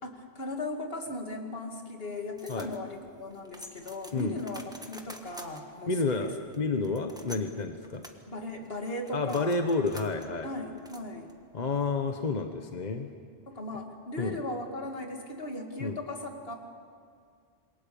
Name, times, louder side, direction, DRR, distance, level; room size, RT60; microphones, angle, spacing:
voice 1, 0.0-6.3 6.6-6.9 8.3-9.6 10.4-11.3 13.5-16.6, left 2 dB, 65° left, 3 dB, 2.5 m, -38 dB
sound 1, 2.4-11.6, equal, 5° right, 1.5 m, -50 dB
voice 2, 5.9-8.0 9.1-10.5 11.5-13.1 14.2-14.4 15.8-16.0, left 3 dB, 45° left, 5 dB, 1.2 m, -30 dB
27.5 x 22.5 x 7.0 m, 2.2 s
omnidirectional pair, 1.1 m